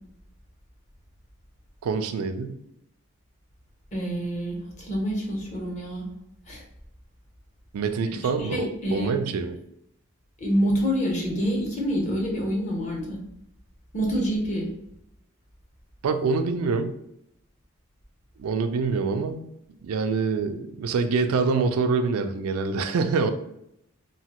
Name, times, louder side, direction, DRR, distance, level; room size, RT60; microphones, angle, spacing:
voice 1, 1.8-2.6 7.7-9.6 16.0-16.9 18.4-19.4 19.8-23.3, right 4 dB, 85° right, 8 dB, 0.3 m, -25 dB
voice 2, 3.9-6.1 6.5-6.6 8.4-9.2 10.4-13.2 13.9-14.7, equal, 35° left, -1 dB, 0.7 m, -27 dB
3.1 x 2.1 x 2.9 m, 0.78 s
head